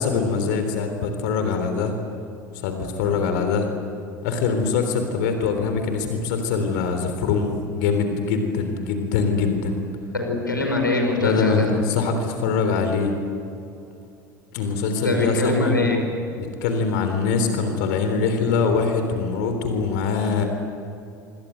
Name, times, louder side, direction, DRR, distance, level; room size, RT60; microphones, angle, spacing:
voice 1, 0.0-1.9 2.5-3.7 4.2-9.8 11.2-13.1 14.5-15.8 16.4-20.4, left 5 dB, 60° left, 6 dB, 3.6 m, -23 dB
voice 2, 10.1-11.7 15.0-16.0, left 2 dB, 85° left, 3 dB, 5.1 m, -23 dB
27.5 x 25.5 x 8.0 m, 2.6 s
figure-of-eight pair, 70°, 11 cm